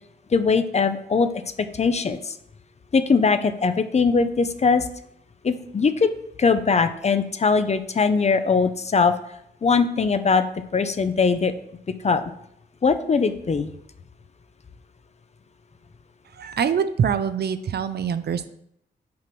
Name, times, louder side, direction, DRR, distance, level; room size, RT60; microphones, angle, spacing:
voice 1, 0.3-1.3 1.6-2.4 2.9-4.9 5.4-6.1 6.4-9.1 9.6-10.4 10.7-11.5 12.0-12.2 12.8-13.7, left 5 dB, 35° left, 10 dB, 0.6 m, -21 dB
voice 2, 16.4-18.5, right 7 dB, 60° right, 11 dB, 0.5 m, -24 dB
6.0 x 4.7 x 6.1 m, 0.74 s
wide cardioid pair, 100°, 18 cm